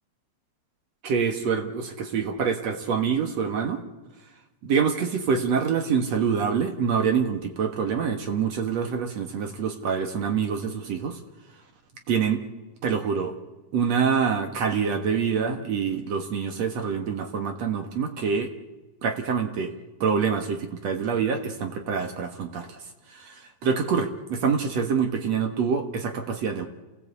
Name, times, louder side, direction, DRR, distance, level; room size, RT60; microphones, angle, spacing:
voice 1, 1.0-3.8 4.7-11.2 12.1-12.4 12.8-13.3 13.7-18.5 19.0-19.7 20.0-22.8 23.1-26.7, right 6 dB, 60° right, 5 dB, 2.6 m, -26 dB
28.5 x 17.0 x 8.4 m, 1.1 s
omnidirectional pair, 3.5 m